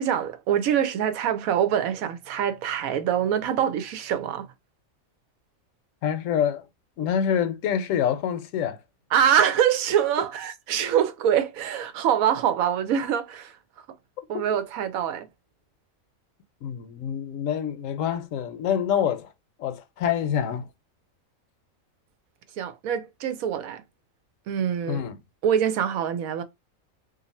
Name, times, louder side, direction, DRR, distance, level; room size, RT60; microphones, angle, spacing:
voice 1, 0.0-4.5 9.1-13.6 14.3-15.3 22.6-23.8 24.5-25.0 25.4-26.4, right 9 dB, 85° right, 1.1 m, -24 dB
voice 2, 6.0-6.7 7.0-8.8 16.6-19.3 19.6-20.7 24.9-25.2, left 8 dB, 75° left, 1.0 m, -26 dB
2.6 x 2.5 x 4.0 m
omnidirectional pair, 1.4 m